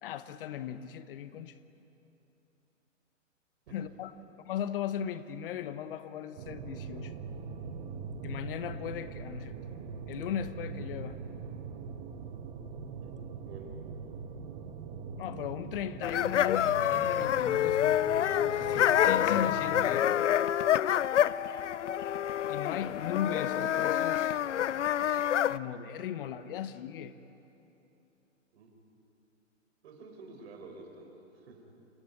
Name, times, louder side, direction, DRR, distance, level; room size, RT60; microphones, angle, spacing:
voice 1, 0.0-1.5 3.7-4.1 4.4-7.1 8.2-9.5 10.1-11.2 15.2-18.0 18.5-20.1 22.5-24.4 25.0-25.2 25.5-27.1, left 9 dB, 45° left, 12 dB, 1.1 m, -37 dB
sound 1, 6.4-19.8, right 5 dB, 40° right, 1.7 m, -42 dB
sound 2, 16.0-25.6, left 11 dB, 65° left, 0.7 m, -27 dB
voice 2, 29.8-31.1 31.4-31.6, right 3 dB, 55° right, 3 dB, 5.5 m, -49 dB
29.0 x 16.5 x 10.0 m, 2.9 s
figure-of-eight pair, 120°, 39 cm